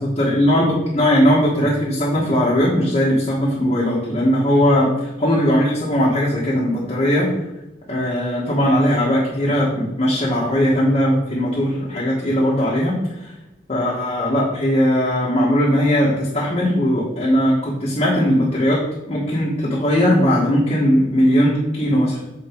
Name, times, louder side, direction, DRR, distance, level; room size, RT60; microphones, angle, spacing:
voice 1, 0.0-7.3 7.9-13.3 13.7-18.8 19.1-22.2, equal, 35° left, -6 dB, 1.6 m, -19 dB
7.1 x 4.6 x 4.6 m, 0.96 s
head